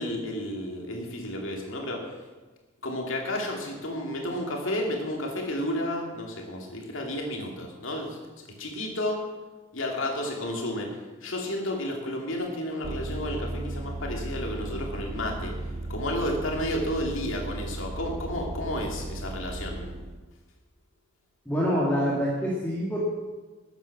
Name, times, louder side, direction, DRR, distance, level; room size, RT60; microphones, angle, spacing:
voice 1, 0.0-2.1 2.8-9.3 9.7-10.9 11.2-15.5 15.9-19.9, left 1 dB, 65° left, 0 dB, 2.7 m, -32 dB
Vehicle, 12.8-20.2, right 2 dB, 30° right, 0.5 m, -36 dB
voice 2, 21.5-23.0, equal, 10° left, -6 dB, 2.1 m, -26 dB
13.0 x 9.0 x 6.0 m, 1.3 s
head